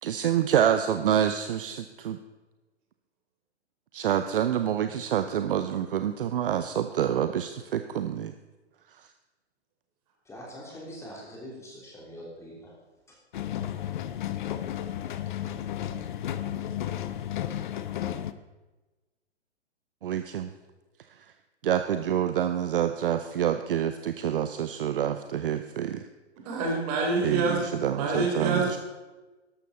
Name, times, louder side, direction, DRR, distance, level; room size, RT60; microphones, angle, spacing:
voice 1, 0.0-2.2 3.9-8.3 20.0-20.5 21.6-26.0 27.2-28.8, right 10 dB, 50° right, 9 dB, 0.7 m, -27 dB
voice 2, 10.2-12.7 13.1-13.2, equal, 10° left, -3 dB, 3.3 m, -43 dB
sound 1, 13.3-18.3, left 11 dB, 45° left, 0.7 m, -33 dB
voice 3, 26.4-27.7 27.9-28.8, right 3 dB, 35° right, 0 dB, 3.9 m, -27 dB
13.0 x 11.5 x 4.2 m, 1.2 s
figure-of-eight pair, 120°, 34 cm